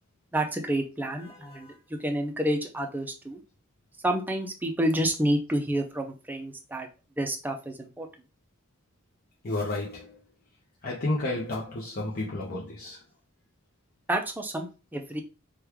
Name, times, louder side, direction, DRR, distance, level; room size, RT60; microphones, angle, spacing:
voice 1, 0.3-3.4 4.0-6.9 7.2-8.1 14.1-15.2, right 1 dB, 10° right, 0.4 m, -29 dB
voice 2, 1.2-1.7 9.4-10.2 10.8-13.0, left 2 dB, 45° left, 0.6 m, -32 dB
3.1 x 2.3 x 3.4 m
head